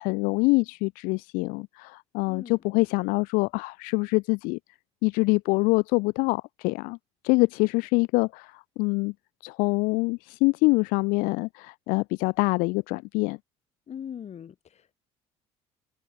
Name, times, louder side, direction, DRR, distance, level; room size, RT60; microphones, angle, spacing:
voice 1, 0.0-4.6 5.0-7.0 7.2-9.1 9.4-13.4, left 26 dB, 75° left, 1.4 m, -25 dB
voice 2, 2.3-2.6 13.9-14.9, left 8 dB, 50° left, 6.4 m, -40 dB
hypercardioid pair, 60°, 15 cm